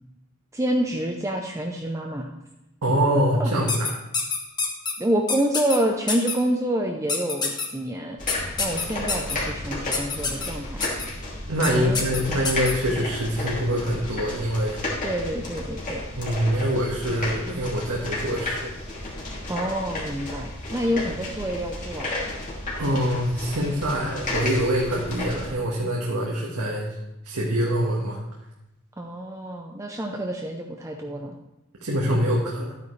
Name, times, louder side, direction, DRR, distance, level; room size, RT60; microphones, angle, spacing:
voice 1, 0.5-2.3 3.4-3.5 5.0-8.2 8.6-10.9 11.7-12.0 15.0-16.0 19.5-22.2 29.0-31.3, right 1 dB, 15° right, 1 dB, 0.6 m, -27 dB
voice 2, 2.8-3.9 11.5-14.8 16.2-18.7 20.9-21.1 22.8-26.9 27.2-28.2 31.8-32.7, equal, 75° right, -3 dB, 1.6 m, -25 dB
sound 1, 3.7-4.9 5.3-5.8 6.1-6.3 7.1-7.7 8.3-9.3 9.9-10.5 10.8-11.0 11.6-11.7 11.9-12.7, left 4 dB, 20° left, 1.2 m, -26 dB
sound 2, 8.2-25.5, left 1 dB, 35° left, 2.7 m, -32 dB
12.5 x 9.4 x 3.3 m, 0.92 s
head